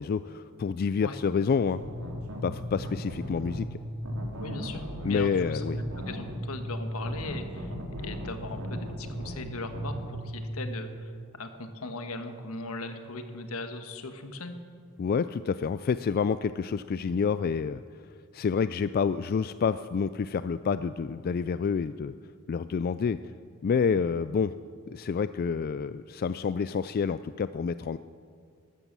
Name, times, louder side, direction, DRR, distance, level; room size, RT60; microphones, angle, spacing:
voice 1, 0.0-1.8 2.4-3.8 5.0-5.8 15.0-17.8 18.3-22.1 22.5-23.2 23.6-24.5 24.9-28.0, left 6 dB, 45° left, 13 dB, 0.3 m, -28 dB
sound 1, 1.6-10.6, equal, 75° right, 2.4 m, -36 dB
voice 2, 4.4-5.6 6.1-14.6, left 2 dB, 80° left, 7 dB, 1.4 m, -39 dB
13.5 x 13.5 x 7.5 m, 2.1 s
head